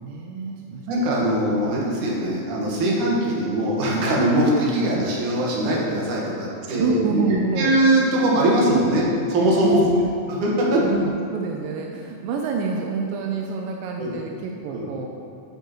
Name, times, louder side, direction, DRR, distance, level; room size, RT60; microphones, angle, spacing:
voice 1, 0.0-1.3 6.6-7.8 9.6-10.1 10.8-15.1, right 4 dB, 85° right, 1 dB, 2.3 m, -27 dB
voice 2, 0.9-7.0 7.6-9.8 10.4-10.8 14.0-14.2 14.7-14.9, right 1 dB, 65° right, -4 dB, 2.8 m, -21 dB
10.5 x 9.0 x 3.0 m, 2.7 s
omnidirectional pair, 3.9 m